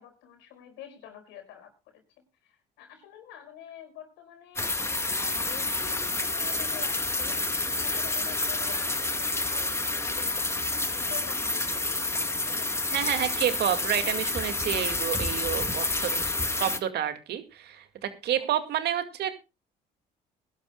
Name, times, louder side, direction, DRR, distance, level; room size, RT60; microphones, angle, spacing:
voice 1, 0.0-2.0 2.4-12.9 18.3-18.5, left 9 dB, 80° left, 6 dB, 4.9 m, -47 dB
sound 1, 4.6-16.8, left 2 dB, 15° left, 1.5 m, -29 dB
voice 2, 12.9-16.3 16.6-19.4, right 10 dB, 65° right, 8 dB, 2.2 m, -29 dB
21.5 x 11.5 x 2.3 m, 0.28 s
supercardioid pair, 75°, 18 cm